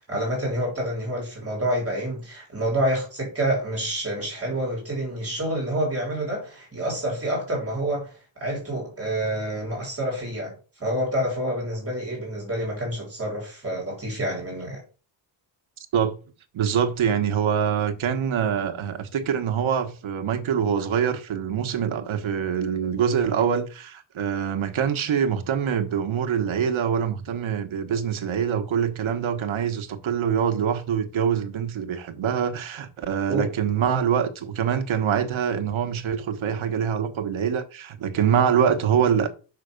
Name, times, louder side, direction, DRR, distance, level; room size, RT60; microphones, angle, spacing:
voice 1, 0.1-14.8 33.3-33.5, right 1 dB, 30° right, 3.6 m, -28 dB
voice 2, 16.5-39.3, right 8 dB, 90° right, 1.3 m, -24 dB
6.7 x 5.8 x 5.1 m
wide cardioid pair, 140°, 46 cm